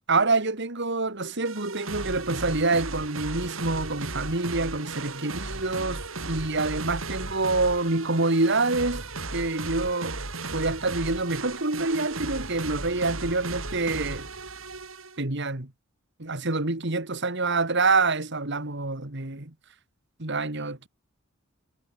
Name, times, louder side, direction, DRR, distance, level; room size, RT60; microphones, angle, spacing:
voice 1, 0.1-9.0 9.3-10.2 10.5-14.3 15.2-15.7 16.2-19.5 20.2-20.9, right 3 dB, 60° right, 2.5 m, -26 dB
sound 1, 1.4-15.2, right 3 dB, 75° right, 5.7 m, -35 dB
head